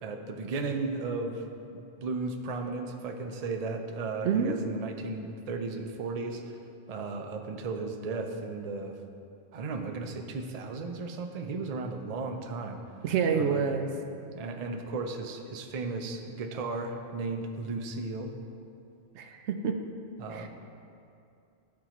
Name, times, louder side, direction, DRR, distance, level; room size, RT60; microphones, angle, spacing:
voice 1, 0.0-1.4 1.7-6.6 6.9-8.9 9.5-12.8 13.3-13.7 14.3-18.3 20.2-20.5, right 3 dB, 45° right, 4 dB, 0.5 m, -35 dB
voice 2, 4.2-4.6 13.0-13.9 19.1-19.8 20.3-20.5, right 6 dB, 90° right, 5 dB, 0.9 m, -27 dB
13.0 x 4.7 x 3.0 m, 2.5 s
omnidirectional pair, 1.1 m